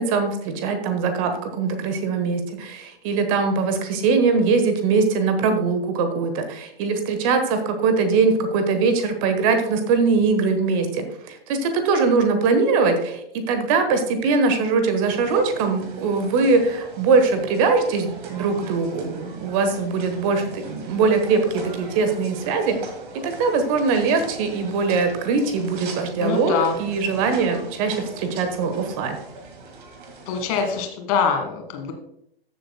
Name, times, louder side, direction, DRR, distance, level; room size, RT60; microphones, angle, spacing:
voice 1, 0.0-22.9 23.2-26.5 26.8-29.2, right 4 dB, 35° right, 7 dB, 1.2 m, -21 dB
sound 1, 15.0-30.8, right 3 dB, 55° right, 1.9 m, -40 dB
voice 2, 26.2-26.8 30.3-31.9, left 6 dB, 40° left, 4 dB, 1.8 m, -24 dB
14.0 x 7.5 x 2.2 m, 0.73 s
figure-of-eight pair, 105°, 30 cm